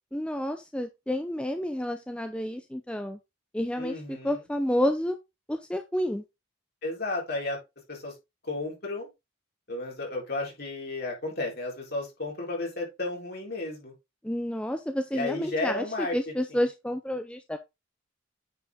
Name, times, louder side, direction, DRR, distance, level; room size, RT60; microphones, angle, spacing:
voice 1, 0.1-3.2 3.5-5.2 5.5-6.2 14.2-17.6, left 1 dB, 5° left, 0.6 m, -30 dB
voice 2, 3.8-4.4 6.8-7.6 7.9-8.1 8.4-9.1 9.7-13.9 15.1-16.2 16.5-16.6, left 2 dB, 50° left, 4.0 m, -33 dB
9.2 x 5.2 x 3.6 m
head